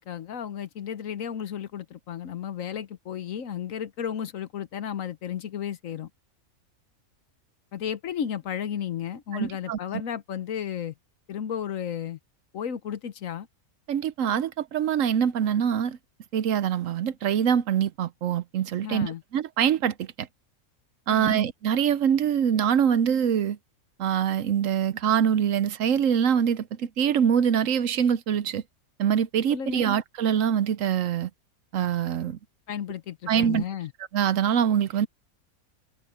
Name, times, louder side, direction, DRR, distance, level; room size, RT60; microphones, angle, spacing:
voice 1, 0.0-6.1 7.7-10.9 11.3-12.2 12.5-13.5 18.8-19.2 21.1-21.4 29.5-29.9 32.7-33.9, left 9 dB, 65° left, 1.3 m, -33 dB
voice 2, 9.3-9.8 13.9-16.0 16.3-20.3 21.1-23.6 24.0-28.6 29.0-31.3 31.7-32.4 33.3-33.6 34.1-35.1, right 8 dB, 65° right, 1.0 m, -24 dB
omnidirectional pair, 1.5 m